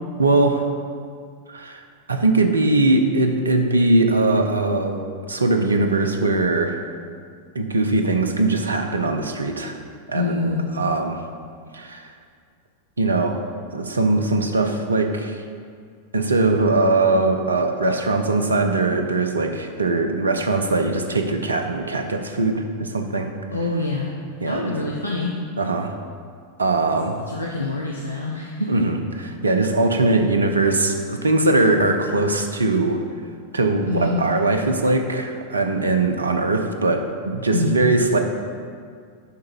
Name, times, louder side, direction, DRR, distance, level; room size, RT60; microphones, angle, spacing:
voice 1, 0.2-0.7 1.5-1.8 2.1-5.0 5.3-6.8 7.5-9.8 10.1-11.2 11.7-12.1 13.0-13.4 13.7-15.4 16.1-23.3 24.4-24.7 25.6-26.0 26.6-27.2 28.7-33.0 33.5-38.2, right 2 dB, 75° right, 5 dB, 0.6 m, -21 dB
voice 2, 10.1-10.7 23.5-24.1 24.4-25.4 27.3-28.9 33.9-34.2 37.5-37.7, left 2 dB, 85° left, -2 dB, 0.6 m, -25 dB
9.5 x 3.7 x 4.5 m, 2.1 s
figure-of-eight pair, 90°, 0 cm